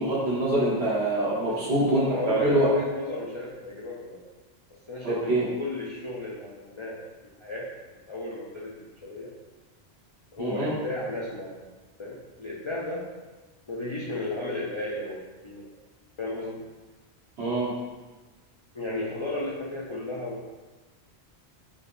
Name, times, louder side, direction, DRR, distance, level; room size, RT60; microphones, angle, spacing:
voice 1, 0.0-2.7 5.0-5.4 10.4-10.7 17.4-17.7, right 1 dB, 70° right, -5 dB, 1.3 m, -25 dB
voice 2, 1.5-4.3 4.7-7.0 7.4-7.7 7.9-9.3 10.3-11.7 12.0-13.1 13.7-15.7 16.2-16.6 18.7-20.5, left 2 dB, 50° left, -6 dB, 0.3 m, -34 dB
4.2 x 3.3 x 2.5 m, 1.2 s
omnidirectional pair, 1.1 m